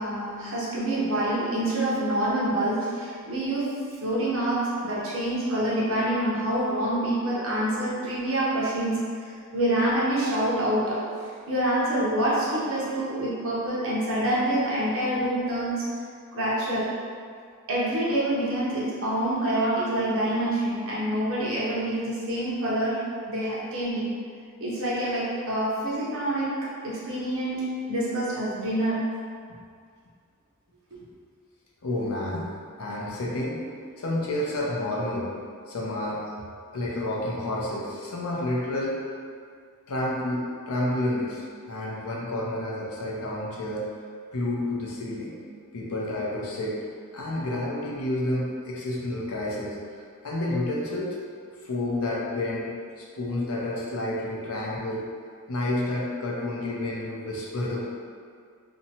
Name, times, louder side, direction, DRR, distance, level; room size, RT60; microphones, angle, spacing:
voice 1, 0.0-11.1 11.5-15.9 16.3-16.9 17.7-24.1 24.6-29.0, right 1 dB, 65° right, -7 dB, 0.7 m, -26 dB
voice 2, 31.8-32.5 32.8-33.6 34.0-35.3 35.7-36.2 36.7-39.0 39.9-43.9 44.3-45.3 45.7-46.8 47.1-49.8 50.2-51.2 51.6-55.1 55.5-57.8, left 1 dB, 70° left, -4 dB, 0.5 m, -30 dB
2.8 x 2.2 x 2.7 m, 2.1 s
head